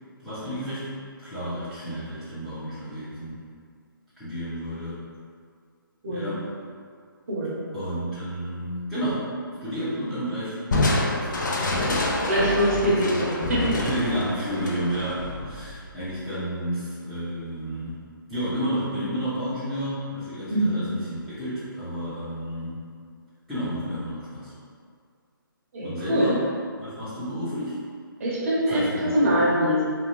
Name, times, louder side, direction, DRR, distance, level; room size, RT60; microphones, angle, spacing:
voice 1, 0.2-3.4 4.2-5.0 6.1-6.4 7.7-9.3 9.6-10.6 10.9-11.6 11.9-12.5 12.8-13.2 13.6-18.0 18.3-22.8 23.5-24.5 25.8-26.4 26.8-27.8 28.7-29.4, equal, ahead, -17 dB, 0.6 m, -31 dB
Crushing, 10.7-16.1, left 2 dB, 55° left, 0.5 m, -27 dB
voice 2, 12.3-13.8 20.5-20.8 25.7-26.3 28.2-29.8, equal, 35° right, -7 dB, 0.8 m, -23 dB
2.6 x 2.3 x 3.0 m, 2.2 s
figure-of-eight pair, 155°, 12 cm